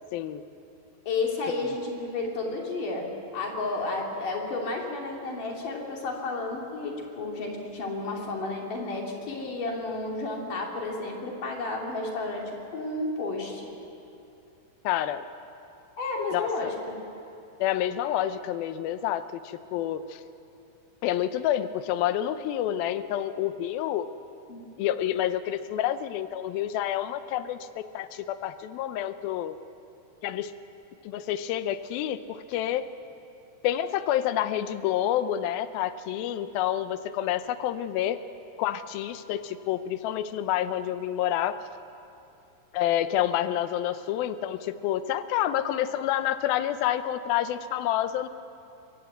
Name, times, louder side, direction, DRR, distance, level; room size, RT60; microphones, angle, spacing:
voice 1, 0.1-0.4 1.6-1.7 14.8-15.2 16.3-16.7 17.6-20.2 21.0-24.1 24.8-29.6 30.2-30.5 31.0-32.8 33.6-38.2 38.6-41.6 42.7-48.3, left 11 dB, 80° left, 12 dB, 2.2 m, -28 dB
voice 2, 1.1-3.1 3.3-13.7 16.0-16.8 24.5-24.7, left 3 dB, 50° left, 0 dB, 4.0 m, -32 dB
25.5 x 21.5 x 8.1 m, 2.8 s
omnidirectional pair, 5.1 m